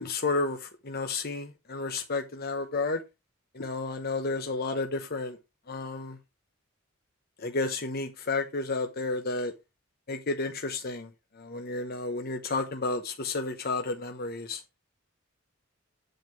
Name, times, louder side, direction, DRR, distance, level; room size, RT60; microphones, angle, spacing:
voice 1, 0.0-3.0 3.5-5.4 5.7-6.2 7.4-9.5 10.1-11.1 11.4-14.6, left 3 dB, 50° left, 1.0 m, -31 dB
8.0 x 7.4 x 4.6 m
head